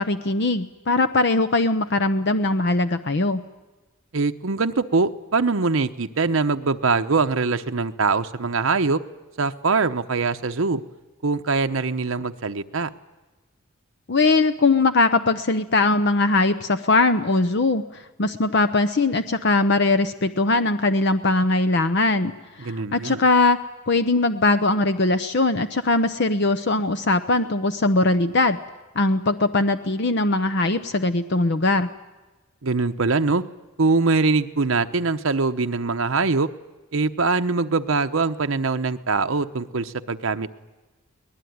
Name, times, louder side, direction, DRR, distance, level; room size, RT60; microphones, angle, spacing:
voice 1, 0.0-3.4 14.1-17.8 18.2-22.3 22.6-23.6 23.9-28.6 29.0-31.9, left 2 dB, 55° left, 10 dB, 0.8 m, -20 dB
voice 2, 4.1-9.0 9.4-10.8 11.2-12.9 22.6-23.2 32.6-33.4 33.8-36.5 36.9-40.6, right 4 dB, 75° right, 7 dB, 0.9 m, -23 dB
23.0 x 19.5 x 9.5 m, 1.2 s
head